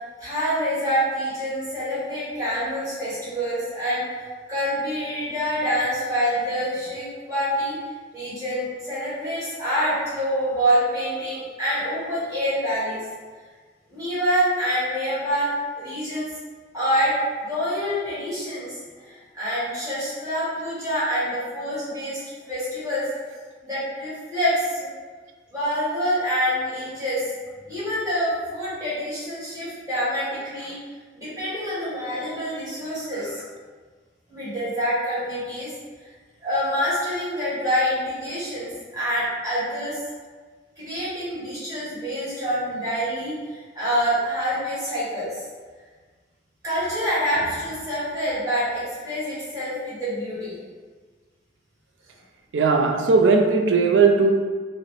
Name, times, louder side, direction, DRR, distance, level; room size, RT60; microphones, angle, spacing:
voice 1, 0.2-4.0 4.5-7.8 8.1-13.1 13.9-16.3 16.7-23.1 23.6-24.9 25.5-27.3 27.6-30.8 31.1-33.4 34.3-35.7 36.4-40.0 40.8-45.5 46.6-50.6, equal, 20° right, -11 dB, 1.5 m, -26 dB
voice 2, 33.1-33.5 52.5-54.3, right 4 dB, 85° right, 4 dB, 0.4 m, -18 dB
3.9 x 2.1 x 3.2 m, 1.5 s
head